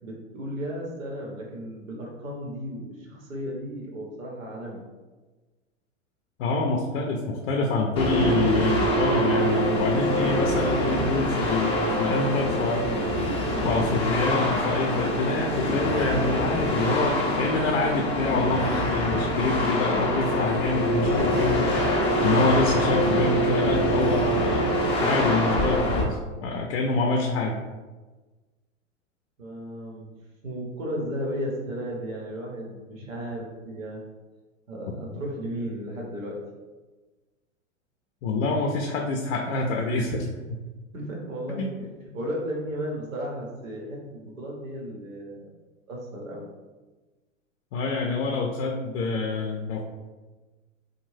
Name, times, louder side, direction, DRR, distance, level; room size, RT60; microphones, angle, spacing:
voice 1, 0.0-4.8 29.4-30.1 30.4-34.0 34.7-36.4 40.9-41.8 42.1-45.5 45.9-46.5, equal, 80° right, -2 dB, 1.0 m, -34 dB
voice 2, 6.4-13.3 13.6-27.6 38.2-40.6 41.5-41.7 47.7-49.8, left 3 dB, 60° left, 1 dB, 0.5 m, -26 dB
sound 1, 8.0-26.0, equal, 15° left, 0.6 m, -25 dB
2.6 x 2.2 x 3.2 m, 1.3 s
hypercardioid pair, 100°, 40 cm